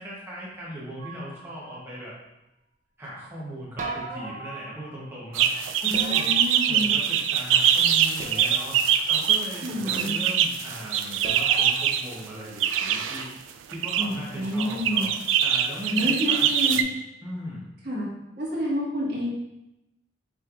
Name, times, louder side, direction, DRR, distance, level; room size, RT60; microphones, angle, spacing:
voice 1, 0.0-2.1 3.0-5.5 5.8-6.3 6.7-8.8 9.1-13.3 13.7-15.1 15.4-16.9 17.2-17.7, equal, 15° right, -6 dB, 0.9 m, -38 dB
sound 1, 1.0-1.9 3.8-5.2 5.9-7.2 8.2-9.0 11.2-11.8, right 3 dB, 45° right, 0.6 m, -39 dB
sound 2, 5.3-12.0 12.6-13.3 13.7-14.1 14.6-16.8, right 9 dB, 85° right, 0.3 m, -23 dB
voice 2, 5.9-7.0 9.6-10.2 14.0-15.1 15.9-16.9 17.8-18.1 18.4-19.3, left 1 dB, 60° right, -6 dB, 1.5 m, -29 dB
6.0 x 3.2 x 2.4 m, 0.91 s
head